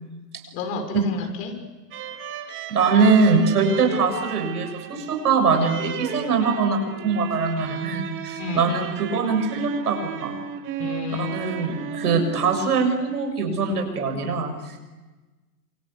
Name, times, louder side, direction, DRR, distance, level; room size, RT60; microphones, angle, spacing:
voice 1, 0.5-1.6 3.7-3.8 8.4-8.8 10.8-11.7, left 3 dB, 35° left, 5 dB, 6.2 m, -31 dB
sound 1, 1.9-13.3, right 7 dB, 25° right, 2.5 m, -35 dB
voice 2, 2.7-10.3 11.2-14.8, right 4 dB, 70° right, 5 dB, 7.3 m, -22 dB
28.0 x 25.5 x 8.5 m, 1.2 s
hypercardioid pair, 125°, 49 cm